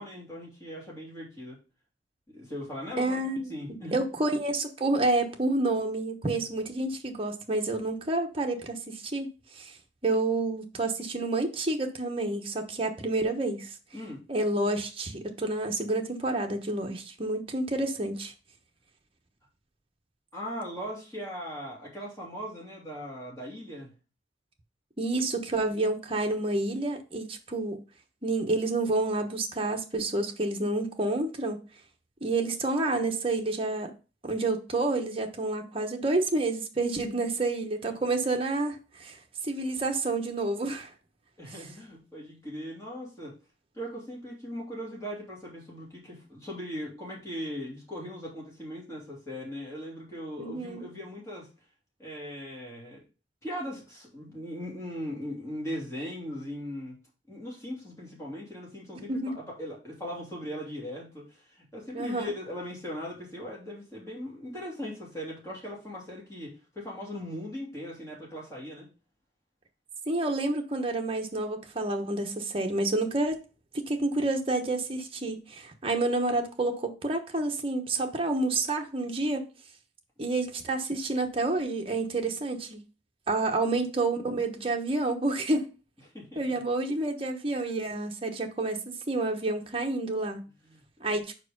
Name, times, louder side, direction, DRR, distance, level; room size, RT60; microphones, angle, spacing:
voice 1, 0.0-1.6 2.3-4.0 6.3-6.4 13.9-14.2 20.3-23.9 25.5-25.6 37.8-38.0 41.4-43.3 43.7-51.5 52.0-53.0 53.4-57.0 57.3-68.9 86.1-86.6 90.6-91.1, equal, 15° left, 2.7 m, -39 dB
voice 2, 3.0-3.5 3.9-9.3 9.6-9.7 10.0-13.7 14.3-18.3 25.0-27.8 28.2-31.6 32.2-33.9 34.2-39.2 39.4-40.9 50.4-50.9 59.1-59.4 61.9-62.3 70.1-73.4 73.7-79.5 80.2-82.8 83.3-85.7 86.3-90.5 91.0-91.4, right 2 dB, 30° right, 1.0 m, -29 dB
4.8 x 4.7 x 5.1 m
head